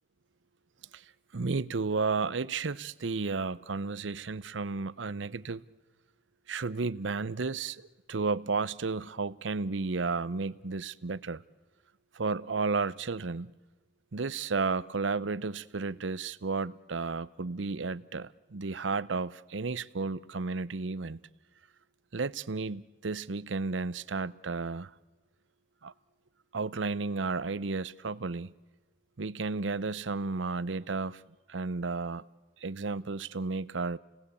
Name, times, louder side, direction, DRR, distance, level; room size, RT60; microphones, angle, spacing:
voice 1, 1.3-5.7 6.5-11.4 12.1-13.5 14.1-21.2 22.1-24.9 25.8-25.9 26.5-28.5 29.2-31.2 31.5-32.2 32.6-34.0, right 4 dB, 80° right, 0.7 m, -33 dB
29.0 x 19.0 x 8.3 m
head